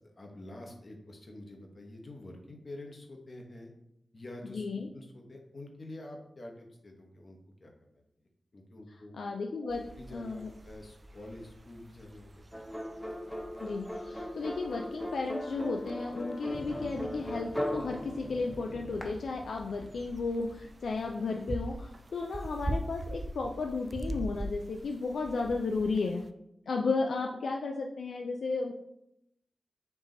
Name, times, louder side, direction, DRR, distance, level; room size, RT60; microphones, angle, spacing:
voice 1, 0.0-3.7 4.1-4.7 4.9-8.0 8.5-9.1 10.0-12.6, left 1 dB, 55° left, 2 dB, 1.0 m, -47 dB
voice 2, 4.4-4.9 9.1-9.8 10.1-10.5 13.6-26.2 26.7-28.7, left 3 dB, 90° left, 1 dB, 0.3 m, -34 dB
sound 1, 9.7-26.3, right 1 dB, 45° right, 0.3 m, -44 dB
sound 2, 12.5-19.0, left 1 dB, 10° left, 0.8 m, -38 dB
sound 3, 16.4-22.2, right 1 dB, 70° right, 0.7 m, -49 dB
4.5 x 2.9 x 3.8 m, 0.80 s
cardioid pair, 45°, 0 cm